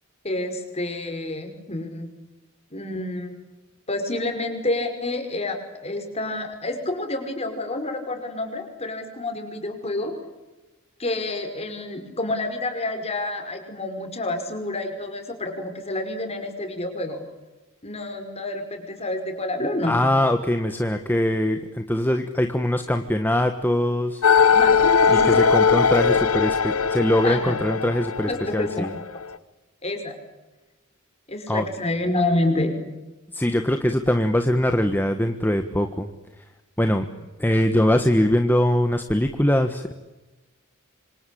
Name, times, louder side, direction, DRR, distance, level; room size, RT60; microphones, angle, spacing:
voice 1, 0.2-2.1 2.7-3.4 3.9-10.1 11.0-17.2 17.8-20.0 24.5-24.8 25.0-25.4 27.2-27.6 28.3-28.9 29.8-30.2 31.3-32.7, left 2 dB, 30° left, 5 dB, 5.5 m, -28 dB
voice 2, 19.8-24.2 25.2-28.9 31.5-31.6 33.3-36.1 36.8-37.1 37.4-39.9, left 1 dB, 10° left, 6 dB, 1.4 m, -22 dB
sound 1, 24.2-29.3, left 6 dB, 90° left, 1.1 m, -20 dB
26.5 x 26.0 x 8.6 m, 1.1 s
head